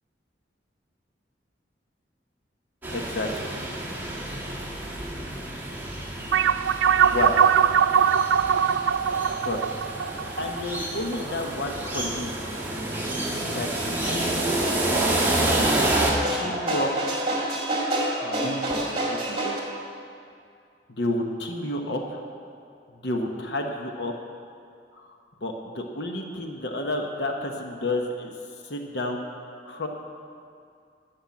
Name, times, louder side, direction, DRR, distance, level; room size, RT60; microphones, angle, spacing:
sound 1, 2.8-16.1, right 1 dB, 10° right, 1.7 m, -29 dB
voice 1, 2.9-3.3 7.0-7.4 9.4-9.6 10.4-12.3 13.5-13.7 14.0-14.4 16.3-16.9 18.2-19.6 20.9-22.2 23.0-24.1 25.0-25.1 25.4-28.3 28.6-29.3 29.6-29.9, left 1 dB, 70° left, 3 dB, 1.0 m, -30 dB
sound 2, 6.3-11.2, right 8 dB, 85° right, 0.3 m, -21 dB
sound 3, 9.0-19.6, right 1 dB, 30° right, 2.1 m, -31 dB
11.5 x 7.3 x 7.2 m, 2.3 s
head